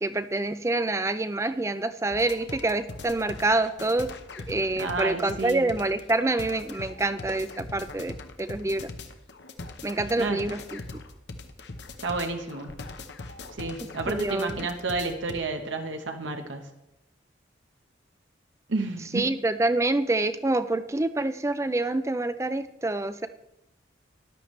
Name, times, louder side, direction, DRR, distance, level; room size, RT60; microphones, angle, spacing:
voice 1, 0.0-4.1 4.5-8.9 9.8-10.8 14.1-14.7 19.1-23.3, right 2 dB, 15° right, 12 dB, 0.4 m, -27 dB
sound 1, 2.1-15.4, left 3 dB, 70° left, 0.9 m, -41 dB
voice 2, 4.8-5.6 10.2-10.4 12.0-12.8 13.6-16.7 18.7-19.3, right 3 dB, 85° right, 5 dB, 1.1 m, -31 dB
13.5 x 11.0 x 3.2 m, 0.92 s
head